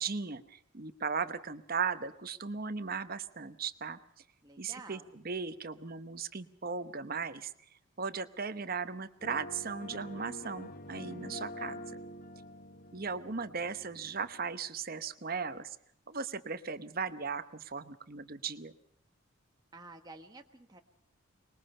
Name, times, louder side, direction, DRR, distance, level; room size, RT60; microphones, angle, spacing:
voice 1, 0.0-4.0 4.6-7.5 8.0-12.0 12.9-15.8 16.1-18.7, right 5 dB, 45° right, 11 dB, 1.0 m, -37 dB
voice 2, 4.4-5.1 19.7-20.8, right 3 dB, 20° right, 3 dB, 1.3 m, -51 dB
sound 1, 9.2-14.5, left 1 dB, 40° left, 1.0 m, -46 dB
24.5 x 21.0 x 5.5 m, 0.74 s
head